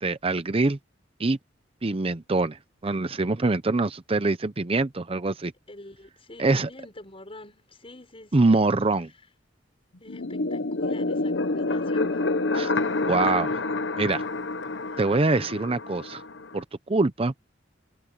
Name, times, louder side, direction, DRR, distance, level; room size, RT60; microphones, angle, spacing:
voice 1, 0.0-0.8 1.2-1.4 1.8-5.5 6.4-6.7 8.3-9.1 12.5-12.7 13.1-13.6 14.0-14.2 15.0-16.2 16.5-17.4, right 3 dB, 30° right, 0.7 m, -24 dB
voice 2, 5.7-8.7 10.0-12.2 14.9-15.0, left 1 dB, 30° left, 5.9 m, -46 dB
sound 1, 10.1-16.6, left 2 dB, 75° left, 1.0 m, -28 dB
head